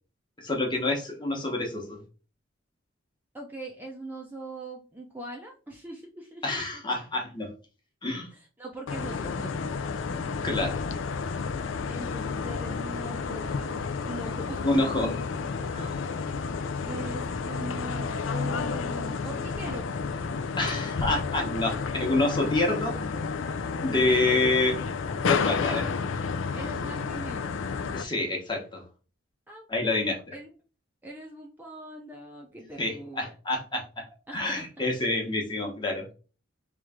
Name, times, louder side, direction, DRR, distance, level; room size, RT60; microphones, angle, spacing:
voice 1, 0.4-2.0 6.4-7.5 8.0-8.3 10.1-10.8 14.6-15.1 15.7-16.0 20.6-23.0 23.8-24.8 25.2-25.9 27.9-28.8 29.7-30.2 32.8-34.0 34.3-36.1, left 2 dB, 25° left, 1 dB, 1.1 m, -27 dB
voice 2, 3.3-6.8 8.3-9.5 11.9-14.7 16.8-19.9 24.0-24.5 25.6-25.8 26.5-27.7 29.5-29.6 30.3-30.5 31.0-33.2 34.3-34.9, right 1 dB, 10° right, -1 dB, 0.6 m, -41 dB
sound 1, 8.9-28.0, left 5 dB, 70° left, 0.4 m, -31 dB
3.2 x 3.1 x 3.6 m, 0.35 s
head